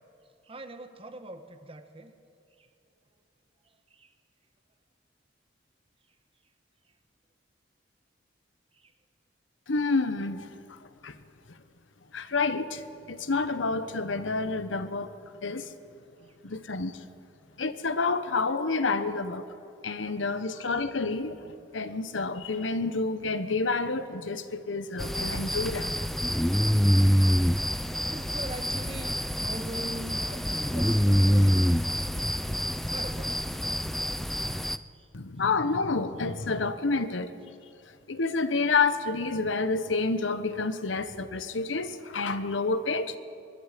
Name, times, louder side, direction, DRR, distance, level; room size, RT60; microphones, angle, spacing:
voice 1, 0.4-2.1 2.6-2.7 3.6-4.1 8.7-8.9 16.2-16.4 17.5-17.6 28.1-31.6 32.8-33.4 34.5-35.1, right 1 dB, 30° right, 8 dB, 1.3 m, -43 dB
voice 2, 9.7-10.8 11.0-11.2 12.1-15.2 15.4-15.7 16.4-17.0 17.6-19.5 19.8-26.0 35.1-37.3 38.1-43.2, left 3 dB, 85° left, 11 dB, 1.1 m, -29 dB
sound 1, 25.0-34.8, equal, ahead, 0.4 m, -26 dB
23.0 x 22.5 x 5.2 m, 2.6 s
head